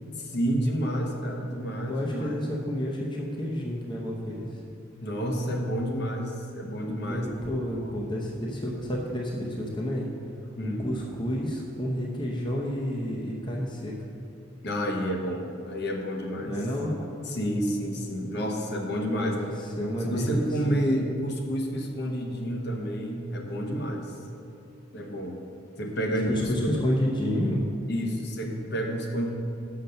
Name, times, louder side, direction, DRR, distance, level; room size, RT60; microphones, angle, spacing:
voice 1, 0.2-2.5 5.0-7.3 7.8-7.9 10.6-10.9 14.6-16.6 17.0-19.4 20.0-24.2 24.9-25.4 25.8-26.8 27.9-29.3, equal, 55° left, 2 dB, 0.9 m, -29 dB
voice 2, 1.9-4.6 7.0-10.1 10.6-13.9 16.4-16.9 19.2-20.8 26.1-27.6, equal, 25° left, -2 dB, 0.7 m, -30 dB
6.7 x 5.8 x 6.6 m, 2.6 s
head